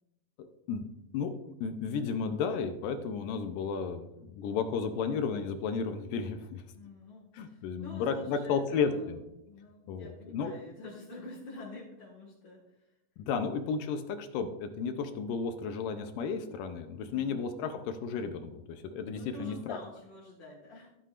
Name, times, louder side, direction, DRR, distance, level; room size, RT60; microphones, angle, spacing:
voice 1, 0.4-0.8 1.1-1.3 1.6-6.6 7.3-9.2 9.9-10.5 13.2-19.8, left 5 dB, 75° left, 7 dB, 2.2 m, -33 dB
voice 2, 6.7-9.1 9.4-12.8 17.1-17.4 18.8-20.9, left 2 dB, 45° left, -6 dB, 1.7 m, -48 dB
14.5 x 7.8 x 2.5 m, 0.90 s
omnidirectional pair, 4.2 m